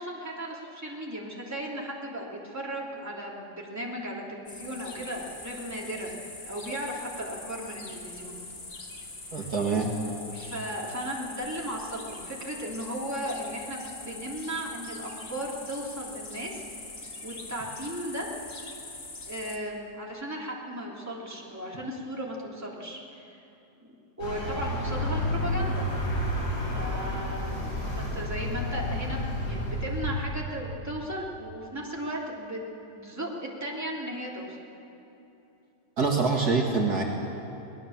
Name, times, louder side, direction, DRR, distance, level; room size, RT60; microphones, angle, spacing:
voice 1, 0.0-8.4 9.3-9.5 10.3-16.7 17.2-18.3 19.3-23.3 24.2-25.9 26.7-27.7 28.0-32.6 32.9-34.6, equal, 10° right, -3 dB, 3.1 m, -36 dB
sound 1, 4.5-19.6, left 2 dB, 35° left, 2.0 m, -43 dB
voice 2, 9.3-9.9 36.0-37.0, right 4 dB, 55° right, 0 dB, 2.4 m, -25 dB
Vehicle, 24.2-30.6, left 1 dB, 75° left, 5.9 m, -30 dB
23.5 x 19.0 x 7.3 m, 2.9 s
omnidirectional pair, 2.0 m